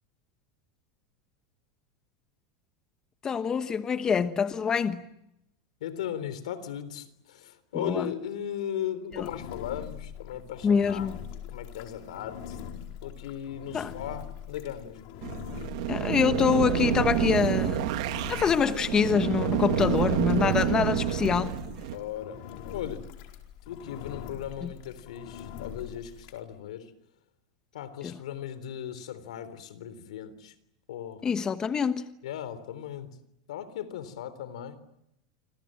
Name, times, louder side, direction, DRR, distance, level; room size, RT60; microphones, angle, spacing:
voice 1, 3.2-5.0 7.7-8.1 9.1-9.2 10.6-11.1 13.7-13.9 15.9-17.9 18.3-21.5 24.6-24.7 28.0-28.2 31.2-32.1, left 6 dB, 20° left, 1.1 m, -25 dB
voice 2, 5.8-11.1 11.5-12.6 13.0-15.0 21.9-23.1 23.7-26.9 27.7-30.5 30.9-31.2 32.2-33.2 33.5-34.8, left 10 dB, 90° left, 3.6 m, -37 dB
Engine, 9.1-26.4, left 8 dB, 60° left, 4.5 m, -43 dB
sound 1, 15.2-22.0, right 11 dB, 65° right, 2.2 m, -28 dB
28.5 x 26.0 x 7.7 m
supercardioid pair, 145°, 3 cm